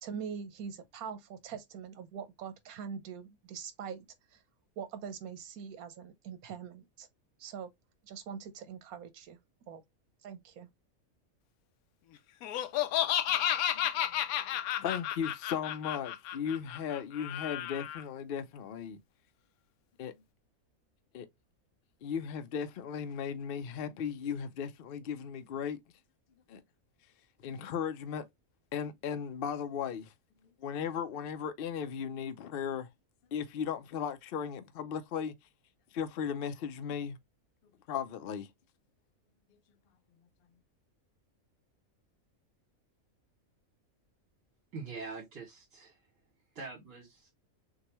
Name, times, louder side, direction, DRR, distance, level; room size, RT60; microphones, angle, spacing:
voice 1, 0.0-4.0 4.3-4.4 4.8-7.1 7.4-7.7 8.0-9.4 9.7-9.8 10.2-10.7, right 7 dB, 85° right, 1.3 m, -43 dB
Laughter, 12.4-18.0, left 11 dB, 90° left, 1.1 m, -32 dB
voice 2, 14.8-19.0 20.0-20.1 21.1-21.3 22.0-25.8 26.5-26.6 27.4-28.2 28.7-30.1 30.6-32.9 33.3-35.3 35.9-37.2 37.9-38.5, left 7 dB, 60° left, 0.6 m, -36 dB
voice 3, 44.7-46.0 46.5-47.3, right 4 dB, 65° right, 2.5 m, -44 dB
6.5 x 2.3 x 2.9 m
omnidirectional pair, 1.5 m